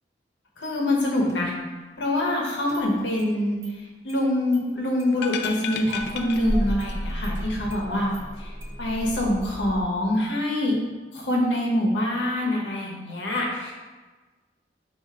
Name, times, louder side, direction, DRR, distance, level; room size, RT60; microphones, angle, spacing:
voice 1, 0.6-1.5 2.0-3.6 4.0-8.1 8.4-8.5 8.8-10.8 11.1-13.7, left 1 dB, 85° left, -2 dB, 0.9 m, -25 dB
Engine starting, 1.3-1.4 2.7-3.3 3.6-3.7 4.1-4.2 4.5-4.6 5.0-5.5 5.9-9.8, equal, 15° right, 0.5 m, -33 dB
sound 1, 5.1-7.1 7.3-7.4, left 7 dB, 65° left, 0.3 m, -33 dB
4.6 x 2.6 x 3.6 m, 1.3 s
head